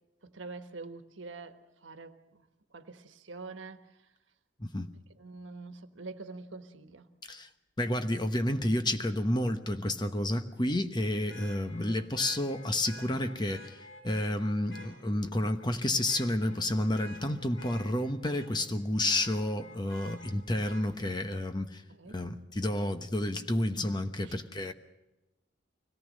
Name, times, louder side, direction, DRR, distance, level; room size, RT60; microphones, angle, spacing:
voice 1, 0.2-4.1 5.2-7.1 21.9-22.2 24.2-24.4, right 3 dB, 85° right, 1.3 m, -46 dB
voice 2, 4.6-4.9 7.3-7.5 7.8-21.8 22.1-24.7, left 1 dB, 25° left, 1.0 m, -30 dB
Vehicle horn car horn honking, 8.5-8.6 11.3-14.9 15.4-15.7 16.0-18.7 19.0-20.8 22.7-22.8, left 1 dB, 85° left, 6.0 m, -50 dB
24.5 x 18.0 x 6.5 m
head